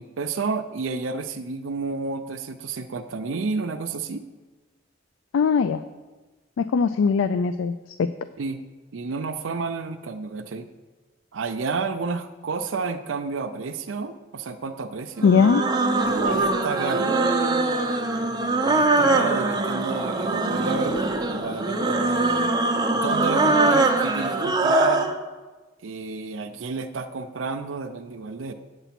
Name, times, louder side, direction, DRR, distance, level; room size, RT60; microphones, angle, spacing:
voice 1, 0.0-4.2 8.4-8.6 8.9-10.7 11.3-15.3 16.0-17.2 18.5-22.5 22.9-25.1 25.8-28.5, right 4 dB, 75° right, 7 dB, 0.5 m, -31 dB
voice 2, 5.3-5.8 6.6-7.7 8.0-8.1 15.2-15.6, left 5 dB, 80° left, 13 dB, 0.3 m, -20 dB
sound 1, 15.2-25.2, right 2 dB, 20° right, 0.7 m, -22 dB
8.1 x 8.0 x 5.9 m, 1.2 s
head